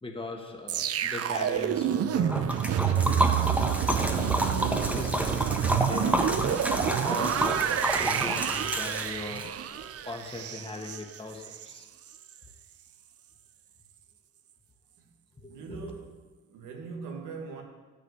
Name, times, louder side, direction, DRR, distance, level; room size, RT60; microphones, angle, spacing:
voice 1, 0.0-3.5 3.9-6.3 7.0-11.9 15.4-15.9, left 2 dB, 15° left, 2 dB, 1.9 m, -40 dB
sound 1, 0.7-11.8 12.1-12.3, right 9 dB, 50° right, 0.6 m, -28 dB
Liquid, 2.3-9.5, right 1 dB, 5° right, 1.3 m, -29 dB
voice 2, 15.5-16.1 16.4-17.6, right 5 dB, 85° right, 2 dB, 2.0 m, -40 dB
12.5 x 4.9 x 8.2 m, 1.3 s
cardioid pair, 90°, 30 cm